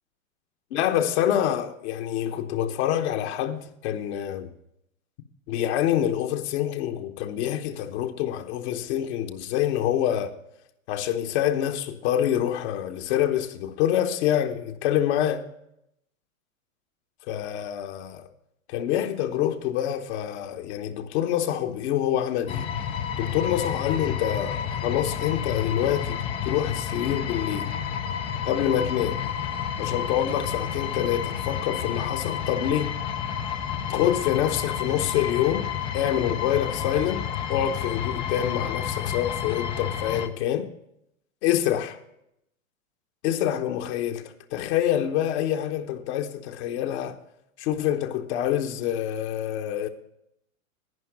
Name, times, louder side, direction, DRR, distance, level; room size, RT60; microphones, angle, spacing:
voice 1, 0.7-4.5 5.5-10.3 10.9-15.5 17.3-18.3 18.7-22.7 23.2-27.7 28.4-29.2 29.8-33.0 33.9-40.7 41.4-42.0 43.2-47.2 47.6-49.9, left 11 dB, 50° left, 1.0 m, -26 dB
sound 1, 22.5-40.3, left 8 dB, 15° left, 0.4 m, -30 dB
11.0 x 9.5 x 5.0 m
hypercardioid pair, 115°, 42 cm